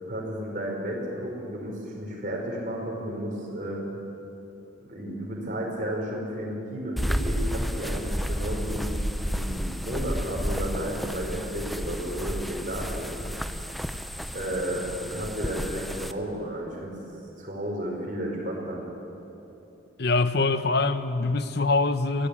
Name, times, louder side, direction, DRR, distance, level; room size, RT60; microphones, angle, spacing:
voice 1, 0.0-3.8 4.9-13.3 14.3-16.9 17.4-18.8, equal, 40° right, -2 dB, 5.2 m, -33 dB
sound 1, 7.0-16.1, equal, ahead, 0.6 m, -31 dB
voice 2, 20.0-22.3, left 3 dB, 55° left, 11 dB, 1.0 m, -24 dB
23.0 x 17.5 x 8.6 m, 2.9 s
head